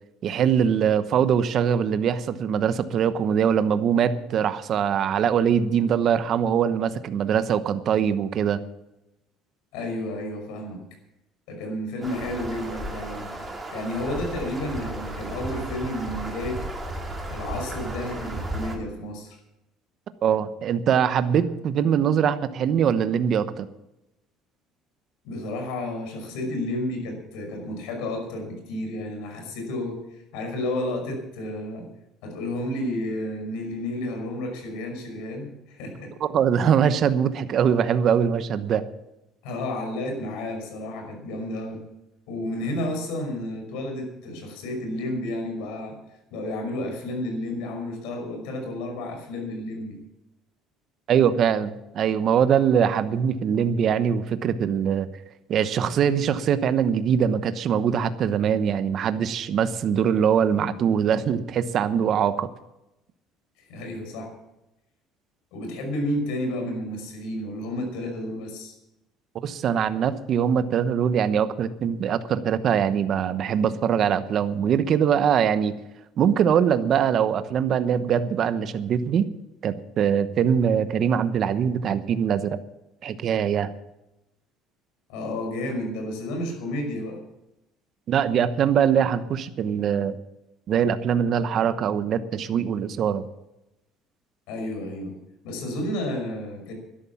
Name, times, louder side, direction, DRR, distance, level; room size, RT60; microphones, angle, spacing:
voice 1, 0.2-8.6 20.2-23.7 36.2-38.8 51.1-55.1 55.5-62.5 69.4-75.8 76.2-79.3 79.6-82.6 83.0-83.7 88.1-90.1 90.7-93.3, right 8 dB, 45° right, 12 dB, 1.0 m, -22 dB
voice 2, 9.7-10.8 11.5-13.3 13.7-16.6 17.3-19.4 25.2-31.9 32.2-36.1 39.4-41.8 42.3-45.9 46.3-50.0 63.7-64.3 65.5-68.7 85.1-87.2 94.5-95.1 95.4-96.7, left 1 dB, 85° left, 3 dB, 5.6 m, -31 dB
sound 1, 12.0-18.8, right 1 dB, 15° right, 2.9 m, -34 dB
13.0 x 11.0 x 7.1 m, 0.91 s
cardioid pair, 140°, 0 cm